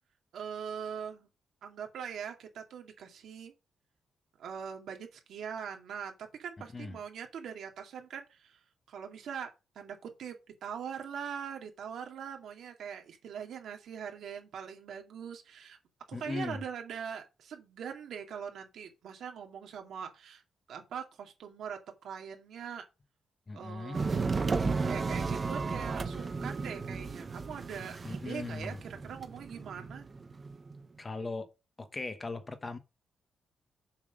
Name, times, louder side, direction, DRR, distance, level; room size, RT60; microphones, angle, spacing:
voice 1, 0.3-1.3 1.6-3.5 4.4-8.6 8.9-9.5 9.7-15.8 16.1-20.4 20.7-22.8 23.5-30.1, right 7 dB, 70° right, 2.3 m, -42 dB
voice 2, 16.1-16.6 23.5-24.0 28.0-28.8 31.0-31.5 31.8-32.8, left 3 dB, 20° left, 1.1 m, -38 dB
sound 1, 23.9-30.8, right 4 dB, 25° right, 1.0 m, -34 dB
7.3 x 5.9 x 6.3 m
wide cardioid pair, 165°, 0 cm